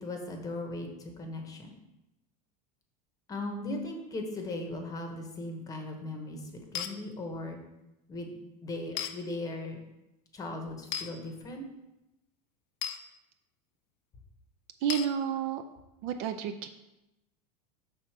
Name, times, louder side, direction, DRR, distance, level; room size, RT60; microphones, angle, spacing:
voice 1, 0.0-1.7 3.3-7.6 8.1-8.3 8.6-9.8 10.3-11.6, left 2 dB, 15° left, 4 dB, 0.9 m, -38 dB
sound 1, 6.7-6.9 9.0-9.1 10.9-11.1 12.8-13.0 14.9-15.1, left 9 dB, 50° left, 0.5 m, -34 dB
voice 2, 14.8-15.6 16.0-16.7, right 8 dB, 50° right, 8 dB, 0.4 m, -30 dB
6.3 x 3.6 x 5.7 m, 0.95 s
supercardioid pair, 155°, 20 cm